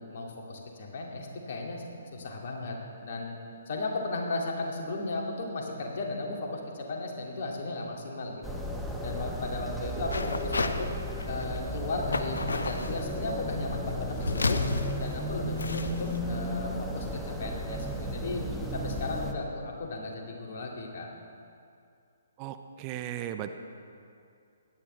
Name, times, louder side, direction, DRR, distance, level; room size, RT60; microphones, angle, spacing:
voice 1, 0.0-1.8 2.1-8.6 9.0-10.9 11.2-14.6 15.0-18.4 18.7-21.1, left 2 dB, 50° left, 0 dB, 2.3 m, -35 dB
sound 1, 8.4-19.3, equal, ahead, 1.0 m, -34 dB
sound 2, 10.1-10.8 11.1-11.7 12.1-13.0 13.8-16.2, left 3 dB, 75° left, 0.7 m, -31 dB
voice 2, 22.4-23.5, right 11 dB, 30° right, 9 dB, 0.5 m, -36 dB
17.0 x 11.0 x 3.3 m, 2.5 s
figure-of-eight pair, 130°, 0 cm